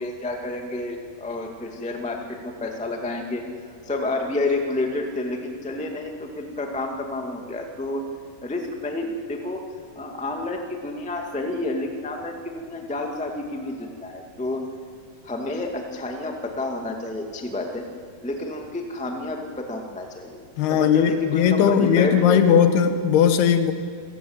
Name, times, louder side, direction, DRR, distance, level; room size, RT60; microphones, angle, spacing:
voice 1, 0.0-3.5 3.8-8.0 8.4-9.6 9.9-14.7 15.2-17.9 18.2-20.4 20.7-22.7, left 2 dB, 5° left, 2 dB, 0.6 m, -30 dB
voice 2, 20.6-23.7, left 8 dB, 80° left, 8 dB, 3.3 m, -18 dB
28.5 x 15.0 x 8.9 m, 2.1 s
omnidirectional pair, 4.6 m